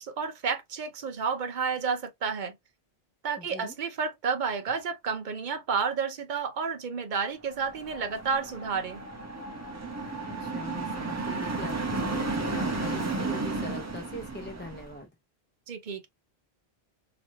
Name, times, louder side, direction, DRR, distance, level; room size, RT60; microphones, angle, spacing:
voice 1, 0.0-2.5 3.2-9.0 15.7-16.1, right 5 dB, 50° right, 0.8 m, -31 dB
voice 2, 3.4-3.8 10.2-15.1, left 1 dB, 15° left, 0.5 m, -42 dB
sound 1, 7.5-14.9, right 3 dB, 20° right, 0.7 m, -33 dB
3.1 x 2.9 x 2.7 m
omnidirectional pair, 1.1 m